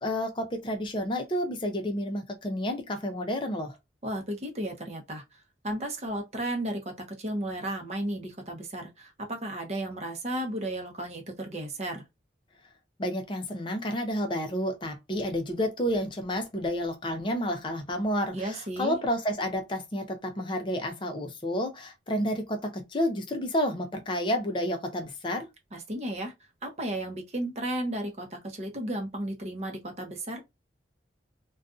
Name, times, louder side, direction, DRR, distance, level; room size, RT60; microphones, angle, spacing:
voice 1, 0.0-3.8 13.0-25.5, equal, 25° left, 0.5 m, -30 dB
voice 2, 4.0-5.2 5.6-12.1 18.3-19.0 25.7-26.3 26.6-30.4, right 1 dB, 35° right, 0.7 m, -34 dB
2.5 x 2.3 x 2.4 m
head